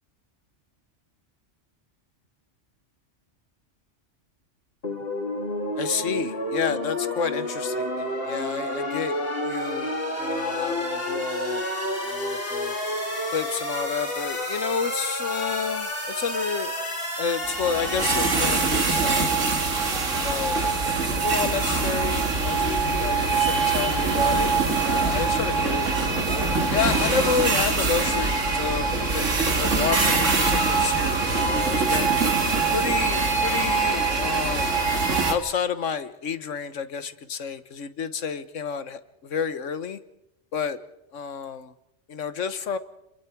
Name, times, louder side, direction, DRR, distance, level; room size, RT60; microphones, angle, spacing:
sound 1, 4.8-19.0, left 1 dB, 50° left, 3.7 m, -30 dB
voice 1, 5.8-9.2 9.4-11.6 12.1-12.8 13.3-16.8 17.2-19.4 20.2-20.6 21.2-26.2 26.7-29.3 29.5-32.1 32.7-34.8 35.3-40.0 40.5-40.8 41.1-41.7 42.1-42.8, left 6 dB, 85° left, 13 dB, 1.5 m, -30 dB
sound 2, 17.4-35.3, right 4 dB, 90° right, 2.4 m, -23 dB
29.5 x 22.5 x 4.6 m, 0.85 s
omnidirectional pair, 1.3 m